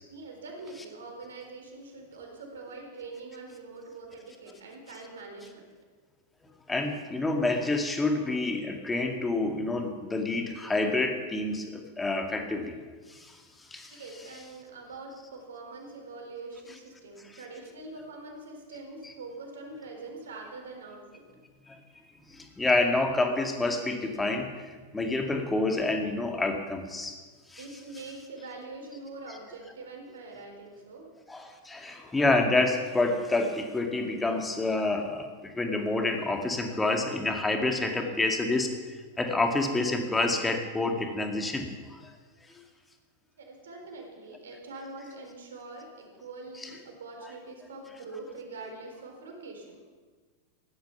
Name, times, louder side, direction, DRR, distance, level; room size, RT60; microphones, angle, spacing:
voice 1, 0.1-5.7 13.9-21.3 27.6-31.1 43.4-49.8, right 3 dB, 65° right, 2 dB, 4.1 m, -44 dB
voice 2, 6.7-12.8 13.1-14.0 17.2-17.4 21.7-21.8 22.3-27.2 27.5-27.6 29.3-29.4 31.3-42.0 42.5-42.6 46.6-46.7, left 2 dB, 10° left, 3 dB, 2.1 m, -28 dB
16.0 x 12.0 x 6.0 m, 1.4 s
figure-of-eight pair, 90°, 0 cm